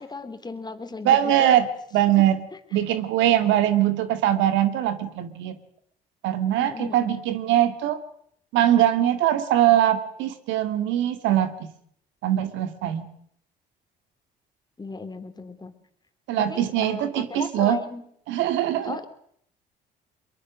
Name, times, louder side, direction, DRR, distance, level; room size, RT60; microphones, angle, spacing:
voice 1, 0.0-1.6 2.2-2.3 6.6-7.1 14.8-15.7 16.4-18.0 18.8-19.1, left 3 dB, 20° left, 9 dB, 3.1 m, -36 dB
voice 2, 1.0-1.7 1.9-2.4 2.7-5.6 6.2-8.0 8.5-11.5 12.2-13.1 16.3-17.8 18.3-19.0, right 12 dB, 80° right, 10 dB, 2.1 m, -22 dB
23.0 x 22.5 x 6.3 m, 0.67 s
supercardioid pair, 70°, 19 cm